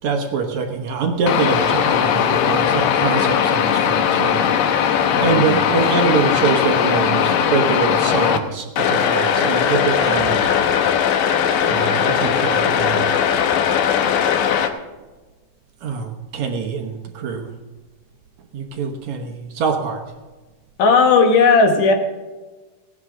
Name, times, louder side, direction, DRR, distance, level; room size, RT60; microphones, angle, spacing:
voice 1, 0.0-4.5 4.9-10.5 11.6-13.2 15.8-17.5 18.5-20.0, right 5 dB, 65° right, 4 dB, 2.2 m, -24 dB
Truck Engine Idle Loops, 1.3-8.4 8.8-14.7, left 8 dB, 90° left, 2.7 m, -19 dB
voice 2, 5.1-5.5 20.8-21.9, left 4 dB, 70° left, 3 dB, 3.0 m, -15 dB
17.0 x 11.0 x 3.8 m, 1.2 s
omnidirectional pair, 3.9 m